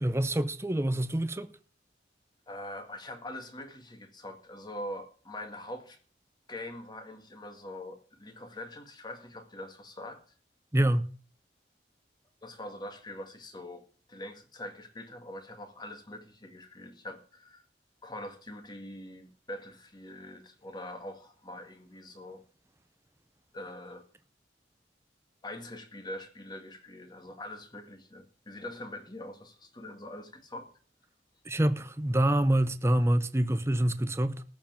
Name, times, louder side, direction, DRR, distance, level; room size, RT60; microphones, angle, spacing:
voice 1, 0.0-1.5 10.7-11.1 31.5-34.4, right 1 dB, 15° right, 0.7 m, -26 dB
voice 2, 2.5-6.0 6.5-10.2 12.4-17.7 18.0-22.4 23.5-24.0 25.4-30.7, left 1 dB, 25° left, 1.9 m, -43 dB
14.0 x 5.4 x 9.0 m
head